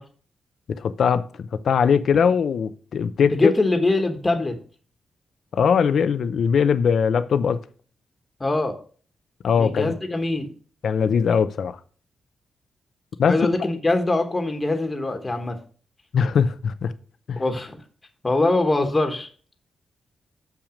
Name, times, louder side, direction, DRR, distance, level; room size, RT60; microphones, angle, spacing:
voice 1, 0.7-3.5 5.5-7.6 9.4-9.9 10.8-11.8 13.2-13.7 16.1-16.9 17.3-17.4, left 6 dB, 70° left, 0.5 m, -21 dB
voice 2, 3.3-4.6 8.4-8.8 9.6-10.5 13.2-15.6 17.4-17.8 18.2-19.3, left 2 dB, 25° left, 1.3 m, -23 dB
6.9 x 5.9 x 5.1 m
cardioid pair, 95°, 0 cm